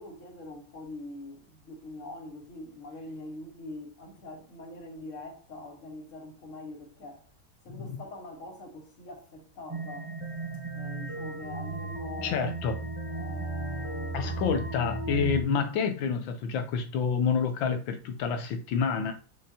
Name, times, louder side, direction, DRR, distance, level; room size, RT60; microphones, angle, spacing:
voice 1, 0.0-7.2 7.6-10.1 10.7-12.5 13.1-14.6, left 2 dB, 45° left, 1.6 m, -43 dB
sound 1, 9.7-15.4, right 3 dB, 20° right, 0.9 m, -35 dB
voice 2, 12.2-12.8 14.1-19.1, left 6 dB, 80° left, 1.5 m, -28 dB
6.5 x 5.6 x 2.8 m
omnidirectional pair, 2.1 m